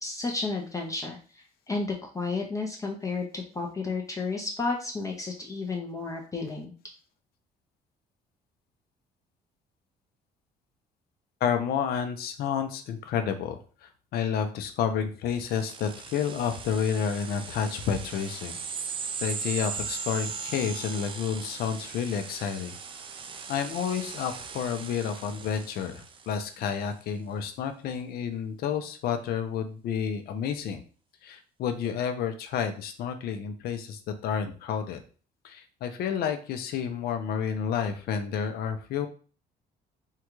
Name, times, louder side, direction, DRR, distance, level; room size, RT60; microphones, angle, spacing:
voice 1, 0.0-6.7, left 3 dB, 20° left, 0 dB, 0.5 m, -32 dB
voice 2, 11.4-18.5 19.2-22.7 23.5-30.8 31.2-35.0 35.4-39.1, left 7 dB, 65° left, 7 dB, 0.6 m, -30 dB
sound 1, 15.4-26.5, right 5 dB, 30° right, 0.4 m, -38 dB
3.6 x 2.2 x 3.0 m, 0.38 s
cardioid pair, 110°, 17 cm